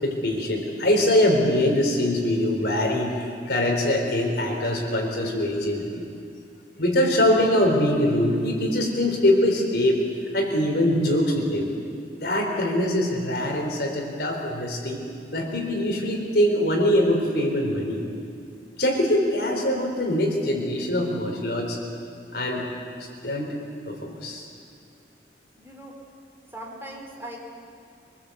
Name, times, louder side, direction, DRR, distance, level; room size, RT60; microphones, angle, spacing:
voice 1, 0.0-6.1 6.8-10.0 10.3-11.7 12.2-15.0 15.3-18.0 18.8-21.8 22.3-22.7 23.2-23.5 23.9-24.5, left 1 dB, 60° left, 1 dB, 4.2 m, -23 dB
voice 2, 25.6-26.0 26.5-27.4, right 1 dB, 15° right, -1 dB, 3.4 m, -39 dB
24.5 x 19.5 x 8.2 m, 2.3 s
head